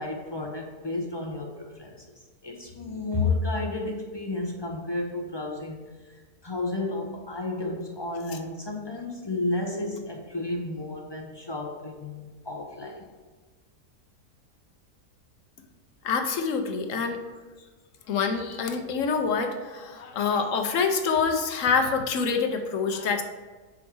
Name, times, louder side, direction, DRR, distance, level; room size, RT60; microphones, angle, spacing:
voice 1, 0.0-13.1, left 2 dB, 30° left, 0 dB, 0.5 m, -32 dB
voice 2, 16.0-17.2 18.1-23.2, left 5 dB, 60° left, 5 dB, 1.0 m, -26 dB
5.2 x 4.8 x 6.1 m, 1.3 s
omnidirectional pair, 1.7 m